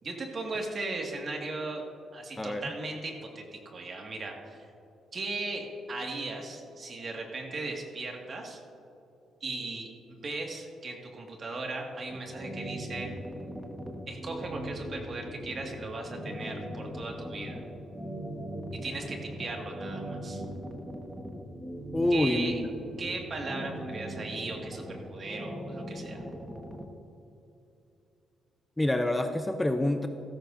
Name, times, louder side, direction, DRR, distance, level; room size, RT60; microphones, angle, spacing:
voice 1, 0.0-1.8 2.1-3.4 3.7-4.7 5.1-8.6 9.4-9.9 10.2-13.1 14.1-17.6 18.8-20.4 22.1-22.6 23.0-26.2, right 3 dB, 45° right, 1 dB, 2.0 m, -37 dB
sound 1, 12.1-26.8, right 1 dB, 10° right, 1.4 m, -39 dB
voice 2, 21.9-22.7 28.8-30.1, left 1 dB, 10° left, 7 dB, 0.6 m, -27 dB
15.5 x 14.0 x 2.7 m, 2.8 s
cardioid pair, 90°, 0 cm